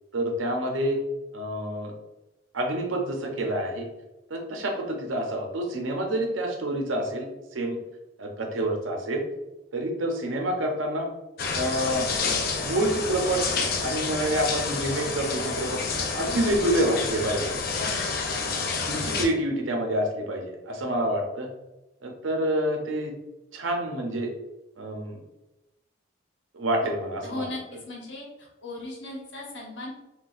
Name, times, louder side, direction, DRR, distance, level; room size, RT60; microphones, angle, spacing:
voice 1, 0.1-1.0 1.3-1.9 2.5-3.9 4.3-7.8 8.2-9.2 9.7-11.1 11.5-12.1 12.6-13.5 13.8-15.8 16.1-17.5 18.9-21.5 22.0-23.1 23.5-24.3 24.8-25.2 26.5-27.5, right 1 dB, 85° right, 2 dB, 0.6 m, -27 dB
sound 1, 11.4-19.3, left 4 dB, 50° left, 0.4 m, -29 dB
voice 2, 17.7-18.1 26.8-26.9 27.2-27.6 27.9-29.9, left 2 dB, 70° left, -2 dB, 1.0 m, -37 dB
3.9 x 2.3 x 2.5 m, 0.97 s
head